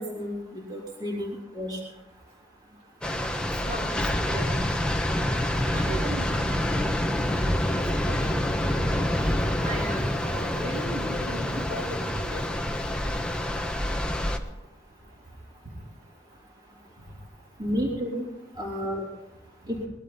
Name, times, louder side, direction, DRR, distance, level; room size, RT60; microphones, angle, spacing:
voice 1, 0.0-1.8 17.6-18.3 18.6-19.1 19.7-19.8, equal, 25° right, -4 dB, 3.6 m, -31 dB
sound 1, 3.0-14.4, left 1 dB, 5° left, 1.2 m, -27 dB
voice 2, 3.6-4.6 5.7-6.7 7.6-8.8 9.2-12.4 17.7-17.8 19.7-19.8, right 1 dB, 55° right, -4 dB, 4.4 m, -38 dB
21.0 x 12.0 x 4.3 m, 0.94 s
head